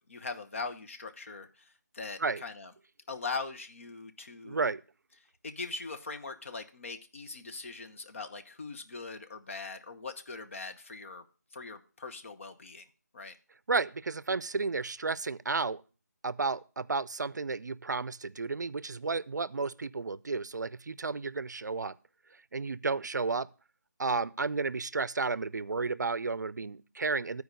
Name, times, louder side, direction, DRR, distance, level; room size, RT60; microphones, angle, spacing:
voice 1, 0.0-2.7 3.1-4.7 5.4-11.2 11.5-12.8 13.1-13.4, left 4 dB, 45° left, 0.9 m, -41 dB
voice 2, 4.4-4.8 13.7-15.8 16.2-22.0 22.5-23.5 24.0-27.4, right 4 dB, 80° right, 0.4 m, -32 dB
11.0 x 4.7 x 6.6 m
figure-of-eight pair, 165°, 9 cm